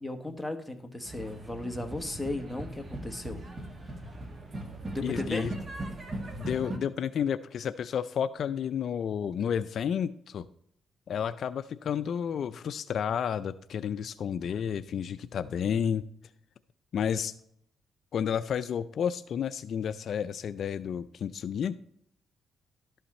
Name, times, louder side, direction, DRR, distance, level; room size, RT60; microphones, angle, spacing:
voice 1, 0.0-3.4 3.8-3.9 4.9-5.5, left 1 dB, 5° left, 3 dB, 1.3 m, -35 dB
sound 1, 1.0-6.8, right 1 dB, 35° right, 1.5 m, -39 dB
voice 2, 5.0-5.6 6.4-10.5 11.1-16.0 16.9-17.3 18.1-21.8, left 8 dB, 60° left, 12 dB, 0.4 m, -31 dB
12.0 x 5.7 x 4.2 m, 0.72 s
cardioid pair, 105°, 0 cm